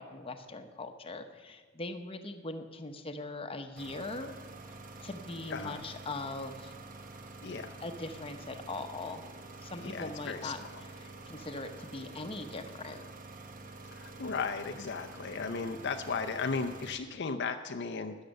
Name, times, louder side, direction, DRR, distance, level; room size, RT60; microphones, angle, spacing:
voice 1, 0.0-4.3 5.0-6.7 7.8-9.2 9.6-13.1, left 2 dB, 30° left, 6 dB, 0.9 m, -41 dB
sound 1, 3.8-17.0, right 3 dB, 45° right, 1.0 m, -48 dB
voice 2, 5.5-5.8 7.4-7.8 9.8-10.5 13.9-18.2, left 4 dB, 60° left, 6 dB, 0.6 m, -35 dB
13.5 x 9.0 x 6.6 m, 1.4 s
head